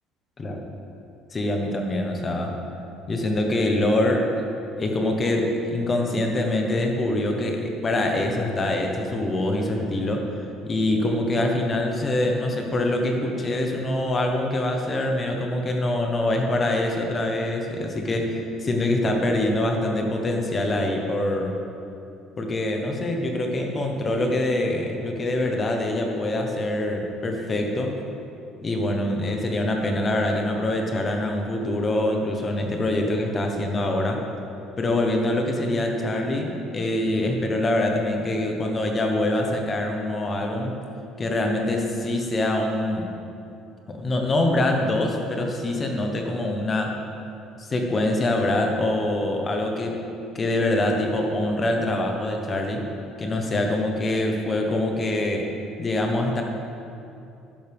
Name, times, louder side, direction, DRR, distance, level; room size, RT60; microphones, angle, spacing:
voice 1, 1.3-2.6 3.1-4.4 4.8-10.4 10.7-21.5 22.4-28.0 28.6-34.2 34.8-40.7 41.2-43.1 43.9-47.0 47.6-50.0 50.3-52.9 53.2-55.5 55.8-56.4, left 1 dB, 25° left, 2 dB, 1.2 m, -24 dB
12.0 x 10.5 x 3.6 m, 2.7 s
cardioid pair, 135°, 0 cm